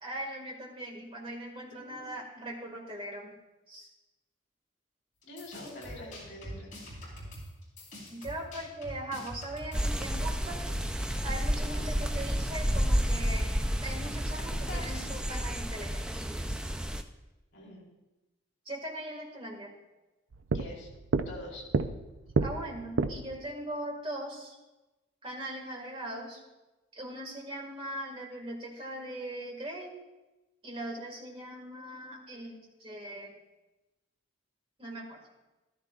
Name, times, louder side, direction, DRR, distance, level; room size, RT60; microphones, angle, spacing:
voice 1, 0.0-3.4 3.7-3.9 8.1-10.8 11.2-16.1 16.5-16.6 18.7-19.7 22.4-24.6 25.2-26.4 26.9-30.0 30.6-33.3 34.8-35.2, right 1 dB, 25° right, 0 dB, 1.9 m, -40 dB
voice 2, 1.7-2.1 5.2-6.8 14.5-14.9 17.5-17.9 20.5-20.9 21.3-21.6, left 1 dB, 60° left, -2 dB, 3.8 m, -45 dB
sound 1, 5.2-10.0, equal, 40° left, 3.9 m, -44 dB
sound 2, 9.7-17.0, equal, 5° right, 0.3 m, -30 dB
sound 3, 20.3-23.4, right 4 dB, 80° right, 0.5 m, -31 dB
14.0 x 13.0 x 2.4 m, 1.0 s
head